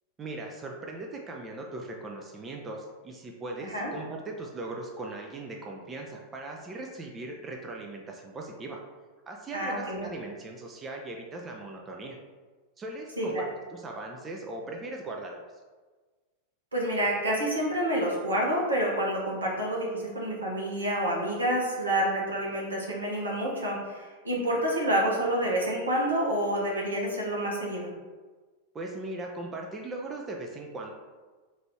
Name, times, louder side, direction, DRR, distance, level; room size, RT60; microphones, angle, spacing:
voice 1, 0.2-8.8 9.3-12.2 12.8-15.4 28.7-30.9, right 2 dB, 20° right, 0 dB, 0.4 m, -39 dB
voice 2, 9.5-10.1 13.2-13.4 16.7-27.9, right 1 dB, 75° right, -3 dB, 1.0 m, -28 dB
3.1 x 2.6 x 4.4 m, 1.4 s
figure-of-eight pair, 90°, 0 cm